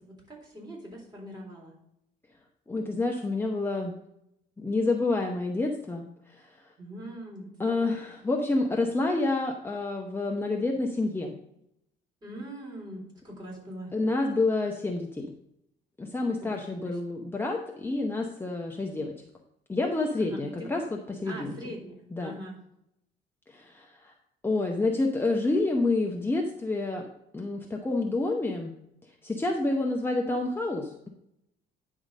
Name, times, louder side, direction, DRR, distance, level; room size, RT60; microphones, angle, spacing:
voice 1, 0.0-1.7 6.8-8.0 12.2-13.9 16.4-16.9 20.2-20.7 21.2-22.6, right 1 dB, 25° right, -3 dB, 3.8 m, -42 dB
voice 2, 2.7-3.9 4.6-6.7 7.6-11.3 13.9-15.3 16.0-19.1 19.7-21.5 22.1-22.3 23.5-24.1 24.4-27.1 27.3-28.7 29.2-31.1, left 2 dB, 15° left, 1 dB, 0.8 m, -28 dB
9.5 x 3.8 x 6.3 m, 0.79 s
cardioid pair, 110°, 17 cm